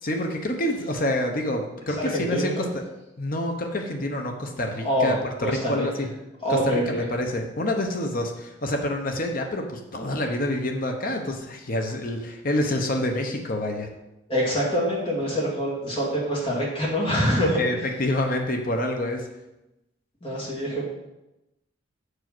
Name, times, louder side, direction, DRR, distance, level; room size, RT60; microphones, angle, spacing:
voice 1, 0.0-2.8 3.2-5.2 5.4-6.1 6.5-13.9 17.5-19.3, left 1 dB, 45° left, 3 dB, 0.9 m, -27 dB
voice 2, 2.0-2.7 4.8-6.1 6.4-7.1 14.3-17.6 20.2-20.9, equal, 25° left, -4 dB, 2.3 m, -25 dB
7.9 x 4.9 x 6.1 m, 0.94 s
head